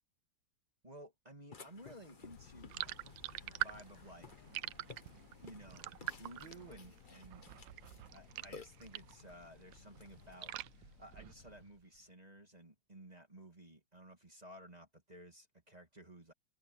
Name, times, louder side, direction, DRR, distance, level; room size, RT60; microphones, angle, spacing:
voice 1, 0.8-4.5 5.4-7.4 8.1-16.3, right 1 dB, 20° right, 2.8 m, -55 dB
Burping eructation, 1.5-10.6, left 4 dB, 30° left, 1.2 m, -57 dB
sound 1, 2.2-11.6, left 7 dB, 50° left, 1.5 m, -61 dB
sound 2, 2.7-9.3 9.6-11.7, right 15 dB, 80° right, 1.3 m, -45 dB
omnidirectional pair, 2.0 m